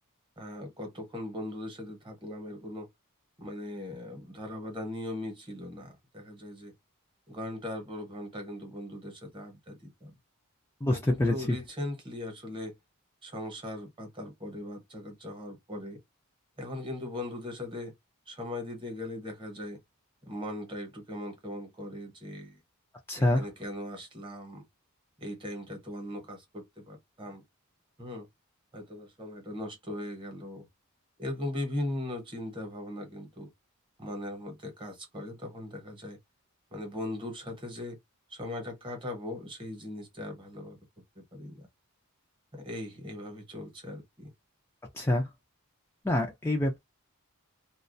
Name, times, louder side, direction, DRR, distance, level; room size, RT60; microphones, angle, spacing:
voice 1, 0.4-2.9 3.4-6.7 7.3-10.1 10.9-12.8 13.2-16.0 16.6-17.9 18.3-19.8 20.3-22.6 23.2-24.6 25.2-27.4 28.0-28.3 28.7-30.7 31.2-33.5 34.0-36.2 36.7-38.0 38.3-40.8 41.1-41.7 42.5-44.3, left 1 dB, 20° right, 0.9 m, -39 dB
voice 2, 10.8-11.6 23.1-23.4 45.0-45.3 46.0-46.8, left 1 dB, 10° left, 0.3 m, -26 dB
2.3 x 2.2 x 2.5 m
head